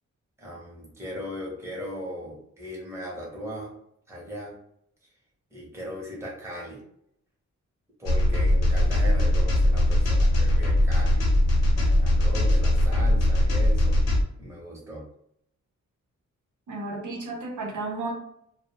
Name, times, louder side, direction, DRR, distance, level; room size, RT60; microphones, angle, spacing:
voice 1, 0.4-3.7 4.1-4.5 5.5-6.8 8.0-11.3 11.6-14.0 14.4-15.0, equal, 10° right, -4 dB, 0.7 m, -38 dB
sound 1, 8.1-14.2, left 1 dB, 60° left, 0.5 m, -21 dB
voice 2, 16.7-18.1, right 2 dB, 80° right, -1 dB, 0.7 m, -33 dB
2.1 x 2.1 x 3.0 m, 0.73 s
wide cardioid pair, 140°, 30 cm